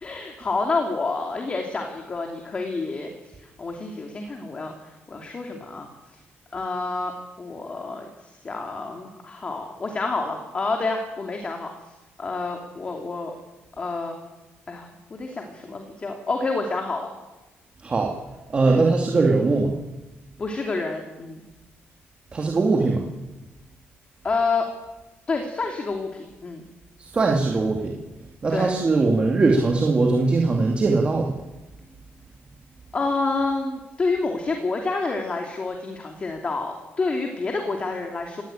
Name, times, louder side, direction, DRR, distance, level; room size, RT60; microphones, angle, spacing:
voice 1, 0.0-3.1 3.4-5.9 6.5-7.1 7.4-11.7 12.2-13.4 13.8-14.1 14.7-17.1 18.7-18.8 20.4-21.4 24.2-24.7 25.3-26.6 28.5-28.7 32.9-38.4, left 3 dB, 25° left, 2 dB, 2.8 m, -28 dB
voice 2, 17.8-18.1 18.5-19.8 22.3-23.1 27.1-28.0 28.4-31.3, right 3 dB, 25° right, -1 dB, 2.5 m, -20 dB
29.0 x 17.5 x 9.0 m, 1.1 s
cardioid pair, 150°, 4 cm